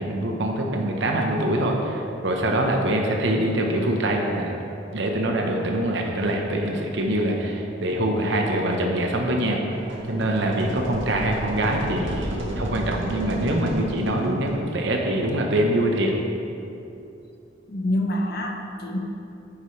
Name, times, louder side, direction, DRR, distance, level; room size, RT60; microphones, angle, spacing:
voice 1, 0.0-4.5 4.9-16.1, right 1 dB, 70° right, 1 dB, 1.0 m, -24 dB
sound 1, 9.7-14.6, right 1 dB, 85° right, 1.5 m, -32 dB
voice 2, 17.7-19.0, left 1 dB, 55° left, 1 dB, 1.0 m, -26 dB
9.8 x 8.9 x 3.3 m, 2.8 s
head